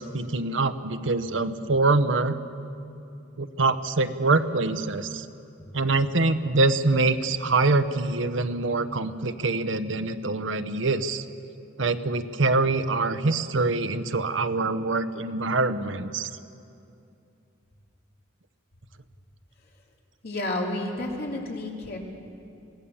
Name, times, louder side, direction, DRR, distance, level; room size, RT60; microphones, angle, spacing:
voice 1, 0.0-2.4 3.4-5.3 5.7-11.2 11.8-16.3, right 3 dB, 70° right, 9 dB, 0.9 m, -24 dB
voice 2, 20.2-22.0, left 1 dB, 55° left, -1 dB, 2.9 m, -30 dB
24.0 x 17.0 x 7.1 m, 2.6 s
head